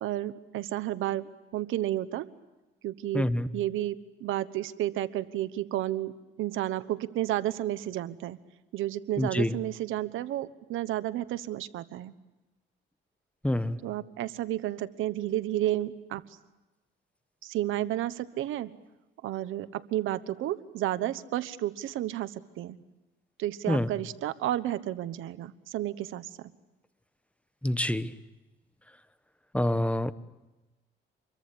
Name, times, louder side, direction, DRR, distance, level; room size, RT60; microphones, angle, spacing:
voice 1, 0.0-2.3 2.8-6.1 6.4-8.4 8.7-12.1 13.8-16.2 17.4-18.7 19.2-22.8 23.4-26.5, right 13 dB, 85° right, 1.2 m, -32 dB
voice 2, 3.1-3.5 9.2-9.6 13.4-13.8 23.7-23.9 27.6-28.2 29.5-30.1, left 1 dB, 5° left, 1.2 m, -27 dB
27.0 x 23.0 x 8.5 m
cardioid pair, 90°, 20 cm